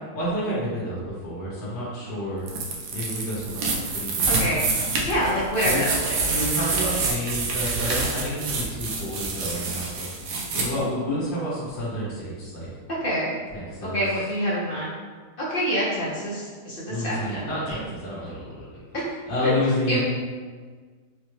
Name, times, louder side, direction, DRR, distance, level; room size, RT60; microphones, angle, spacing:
voice 1, 0.1-2.5 2.9-4.3 5.6-5.9 6.2-10.3 10.5-12.7 13.5-14.0 16.9-18.6 19.3-20.0, left 1 dB, 80° left, -8 dB, 1.6 m, -29 dB
sound 1, 2.5-10.6, right 4 dB, 70° right, 1.1 m, -27 dB
voice 2, 4.2-4.6 5.0-6.2 13.0-13.3 13.8-14.9 15.5-17.8 18.9-19.0 19.4-19.5 19.9-20.0, equal, 60° left, -7 dB, 0.6 m, -26 dB
4.6 x 2.1 x 3.1 m, 1.5 s
omnidirectional pair, 2.0 m